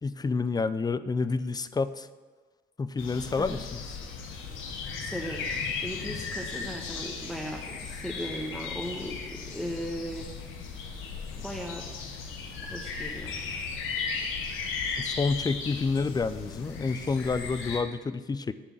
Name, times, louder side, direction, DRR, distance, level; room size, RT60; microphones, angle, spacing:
voice 1, 0.0-2.1 2.8-3.8 15.0-18.5, left 4 dB, 20° left, 14 dB, 0.4 m, -29 dB
sound 1, 3.0-17.8, left 5 dB, 90° left, 1.1 m, -36 dB
voice 2, 5.0-5.6 5.8-10.3 11.4-11.8 12.6-13.4, equal, ahead, -1 dB, 1.1 m, -37 dB
11.0 x 3.9 x 7.3 m, 1.4 s
cardioid pair, 90°, 20 cm